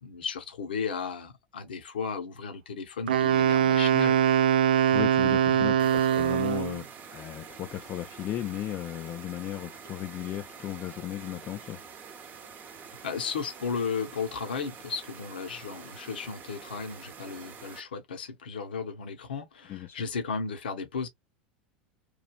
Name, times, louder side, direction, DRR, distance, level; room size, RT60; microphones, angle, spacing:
voice 1, 0.0-4.2 5.5-5.8 13.0-21.1, left 5 dB, 85° left, 0.8 m, -35 dB
Wind instrument woodwind instrument, 3.1-6.8, right 9 dB, 80° right, 0.3 m, -23 dB
voice 2, 4.9-11.8 19.7-20.0, left 12 dB, 40° left, 0.4 m, -36 dB
sound 1, 5.8-17.8, right 6 dB, 35° right, 0.8 m, -47 dB
3.1 x 2.4 x 2.3 m
hypercardioid pair, 90°, 5 cm